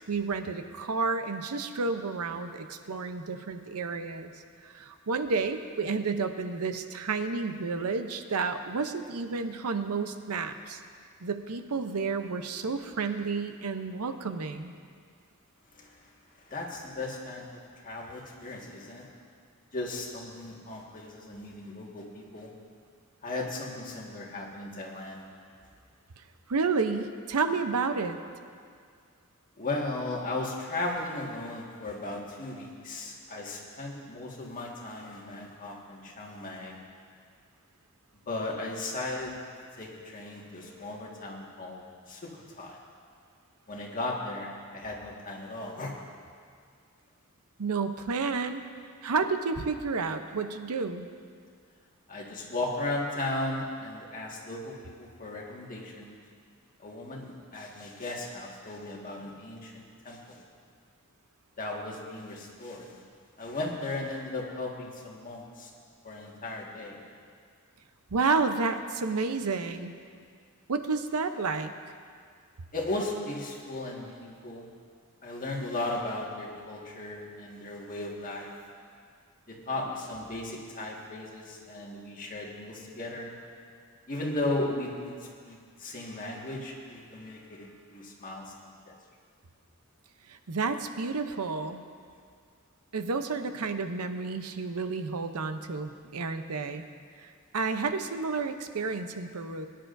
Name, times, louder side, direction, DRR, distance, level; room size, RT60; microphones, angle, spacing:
voice 1, 0.0-4.3 4.6-10.8 11.2-14.7 26.5-28.2 47.6-48.6 49.0-51.1 68.1-69.9 70.7-71.7 90.3-91.8 92.9-96.9 97.2-99.7, right 4 dB, 80° right, 8 dB, 0.7 m, -31 dB
voice 2, 16.4-19.1 19.7-22.5 23.2-25.2 29.6-36.8 38.3-39.4 39.8-42.8 43.7-45.9 52.1-56.2 56.8-60.4 61.6-62.9 63.4-65.7 66.0-67.0 72.7-74.7 75.2-78.6 79.5-83.4 84.1-85.1 85.5-88.9, left 2 dB, 40° left, -2 dB, 1.7 m, -36 dB
22.0 x 10.5 x 2.6 m, 2.1 s
head